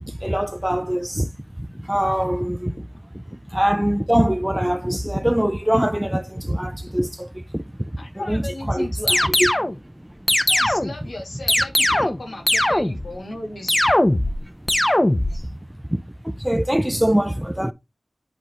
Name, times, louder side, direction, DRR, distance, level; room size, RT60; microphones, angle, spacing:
voice 1, 0.2-1.3 1.9-2.7 3.5-7.6 8.3-8.4 8.7-8.9 9.4-9.5 10.5-10.6 15.9-17.7, equal, 10° right, 0.5 m, -22 dB
voice 2, 8.0-9.4 10.5-13.9, left 1 dB, 85° left, 3.1 m, -35 dB
sound 1, 9.1-9.8 10.3-11.0 11.5-12.2 12.5-13.1 13.7-14.4 14.7-15.4, left 1 dB, 25° left, 0.8 m, -19 dB
9.9 x 3.9 x 3.0 m
cardioid pair, 40°, 0 cm